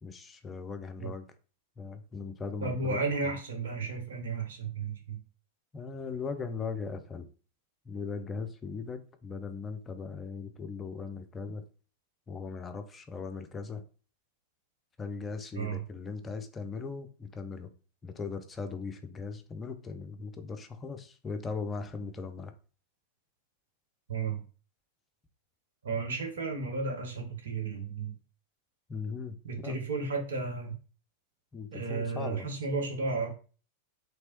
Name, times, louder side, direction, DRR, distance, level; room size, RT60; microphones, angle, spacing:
voice 1, 0.0-1.3 1.8-3.0 3.2-3.4 5.7-7.3 7.9-11.6 12.3-13.8 15.0-17.7 18.0-22.5 28.9-29.3 29.6-29.8 31.5-32.5, left 5 dB, 20° left, 7 dB, 0.5 m, -39 dB
voice 2, 2.6-5.2 15.5-15.8 24.1-24.4 25.8-28.2 29.4-30.8 31.7-33.3, right 4 dB, 65° right, 3 dB, 1.0 m, -33 dB
3.3 x 3.0 x 3.0 m, 0.37 s
figure-of-eight pair, 90°, 0 cm